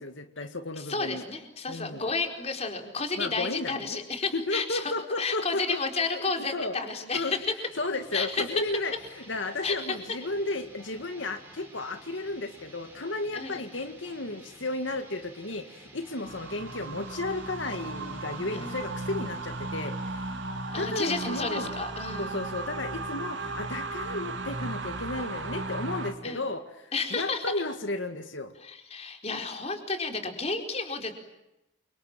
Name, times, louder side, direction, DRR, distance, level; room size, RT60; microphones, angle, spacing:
voice 1, 0.0-1.2 1.7-2.0 3.2-4.0 4.3-6.2 6.5-6.8 7.1-7.4 7.8-8.9 9.3-20.2 20.8-21.7 22.2-28.5, left 2 dB, 80° left, 7 dB, 2.0 m, -33 dB
voice 2, 0.8-4.9 5.2-7.5 8.1-8.6 9.6-10.0 13.3-13.7 16.2-16.4 18.5-18.8 20.7-22.4 26.2-26.4 26.9-27.5 28.6-31.1, left 4 dB, 35° left, 4 dB, 4.6 m, -32 dB
sound 1, 6.8-22.2, right 2 dB, 10° right, 6.8 m, -53 dB
sound 2, 16.2-26.1, right 2 dB, 80° right, 3.9 m, -35 dB
28.5 x 26.0 x 7.5 m, 0.92 s
head